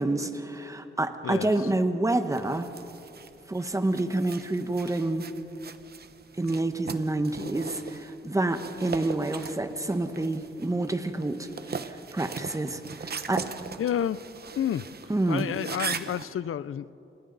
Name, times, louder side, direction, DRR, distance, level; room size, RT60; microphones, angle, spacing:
voice 1, 0.0-2.7 3.5-5.3 6.4-11.5 12.1-13.4 15.1-15.5, right 2 dB, 15° right, 8 dB, 1.1 m, -28 dB
sound 1, 2.3-16.2, right 6 dB, 50° right, 0.9 m, -40 dB
voice 2, 13.8-14.2 14.6-14.9 15.3-16.9, left 10 dB, 80° left, 17 dB, 0.6 m, -30 dB
29.0 x 27.0 x 4.0 m, 2.8 s
wide cardioid pair, 155°, 21 cm